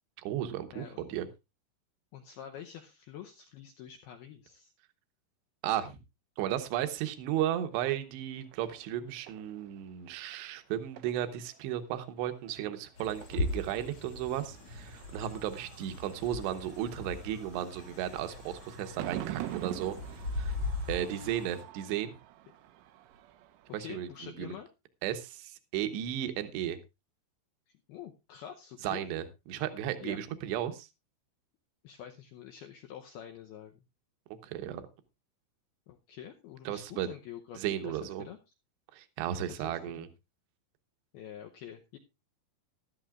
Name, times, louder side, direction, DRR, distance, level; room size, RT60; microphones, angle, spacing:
voice 1, 0.2-1.3 5.6-6.0 6.4-20.5 20.9-22.1 23.7-24.5 25.0-26.8 28.8-30.9 34.4-34.8 36.7-37.1 37.6-38.3 38.9-40.1, right 11 dB, 75° right, 8 dB, 3.0 m, -34 dB
voice 2, 0.7-1.0 2.1-4.7 21.1-21.3 23.8-24.7 27.9-29.1 30.0-30.2 31.8-33.8 35.9-38.4 39.5-40.1 41.1-42.0, left 10 dB, 85° left, 4 dB, 2.2 m, -47 dB
sound 1, 7.3-24.3, right 13 dB, 90° right, 3.4 m, -47 dB
sound 2, 13.0-21.6, left 2 dB, 45° left, 2.3 m, -39 dB
16.0 x 12.5 x 2.5 m, 0.25 s
omnidirectional pair, 5.5 m